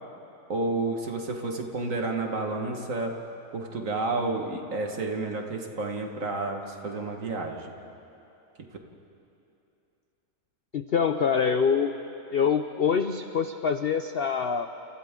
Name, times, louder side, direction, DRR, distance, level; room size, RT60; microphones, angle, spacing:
voice 1, 0.5-3.2 3.5-7.7, right 3 dB, 50° right, 2 dB, 2.0 m, -30 dB
voice 2, 10.7-11.9 12.3-14.7, left 6 dB, 60° left, 8 dB, 0.6 m, -25 dB
29.5 x 29.5 x 3.8 m, 2.8 s
omnidirectional pair, 1.8 m